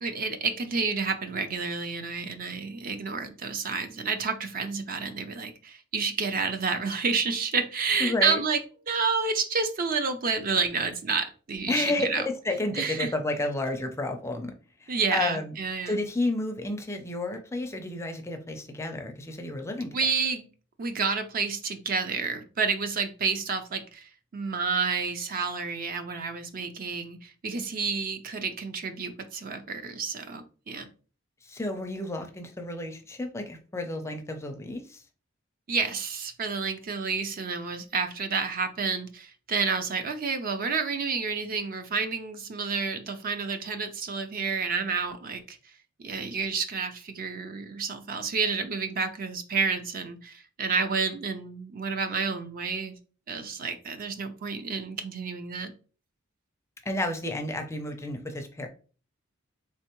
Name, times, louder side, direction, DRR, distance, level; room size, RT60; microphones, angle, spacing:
voice 1, 0.0-8.6 8.9-12.2 12.7-13.1 14.9-16.0 19.9-20.4 20.8-30.9 35.7-45.6 46.0-53.0 53.3-55.7, right 5 dB, 45° right, 8 dB, 0.5 m, -30 dB
voice 2, 8.0-8.4 11.7-14.5 14.8-15.6 15.9-20.0 31.4-35.0 56.9-58.7, left 2 dB, 15° left, 5 dB, 0.4 m, -31 dB
3.6 x 3.3 x 3.0 m, 0.38 s
head